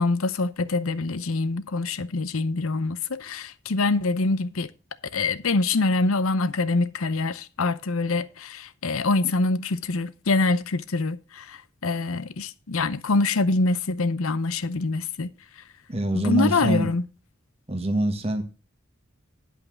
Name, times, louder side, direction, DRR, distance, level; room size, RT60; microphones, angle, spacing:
voice 1, 0.0-4.7 5.1-15.3 16.1-17.1, left 3 dB, 85° left, 0.7 m, -25 dB
voice 2, 15.9-16.9 17.7-18.4, right 1 dB, 30° right, 1.4 m, -24 dB
11.0 x 5.4 x 6.2 m
head